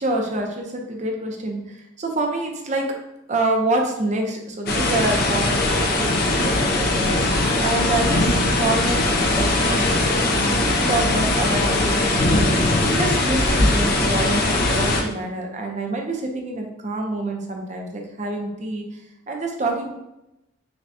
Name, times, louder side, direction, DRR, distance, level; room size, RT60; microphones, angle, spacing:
voice 1, 0.0-2.8 3.3-8.3 8.6-12.4 12.8-14.4 14.7-18.9 19.3-20.0, right 2 dB, 40° right, 1 dB, 0.6 m, -27 dB
sound 1, 4.7-15.0, left 2 dB, 50° left, 0.5 m, -20 dB
5.8 x 2.2 x 2.6 m, 0.91 s
head